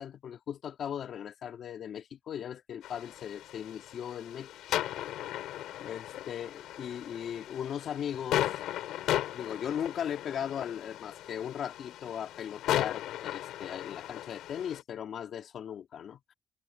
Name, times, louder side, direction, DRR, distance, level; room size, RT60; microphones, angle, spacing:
voice 1, 0.0-4.5 5.0-5.1 5.8-8.6 9.3-16.3, left 9 dB, 65° left, 2.7 m, -38 dB
sound 1, 2.8-14.8, left 13 dB, 85° left, 5.8 m, -36 dB
cardioid pair, 90°, 0 cm